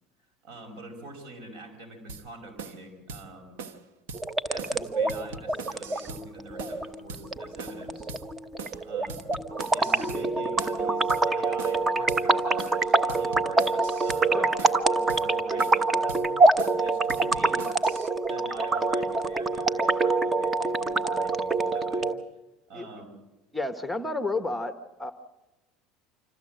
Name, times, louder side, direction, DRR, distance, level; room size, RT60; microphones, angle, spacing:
voice 1, 0.4-3.6 4.5-8.1 8.8-9.2 9.7-16.3 16.8-17.7 18.3-22.1 22.7-23.2, right 2 dB, 65° right, 4 dB, 5.5 m, -46 dB
sound 1, 2.1-2.3 2.6-2.8 3.1-3.3 3.6-3.8 4.1-4.2 4.6-4.8 5.1-6.3 6.6-6.8 7.1-7.3 7.6-7.8 8.1-8.3 8.6-8.8 9.1-10.3 10.6-10.8 11.1-11.3 11.6-11.8 12.1-12.3 12.6-12.8 13.1-14.3 14.6-14.8 15.1-15.3 15.6-15.8 16.1-16.3 16.6-16.8 17.1-18.1, right 5 dB, 90° right, 1.2 m, -40 dB
sound 2, 4.1-22.1, right 3 dB, 20° right, 1.0 m, -25 dB
voice 2, 23.5-24.7 25.0-25.1, left 2 dB, 5° left, 9 dB, 1.0 m, -30 dB
26.5 x 14.0 x 7.7 m, 1.1 s
supercardioid pair, 110°, 0 cm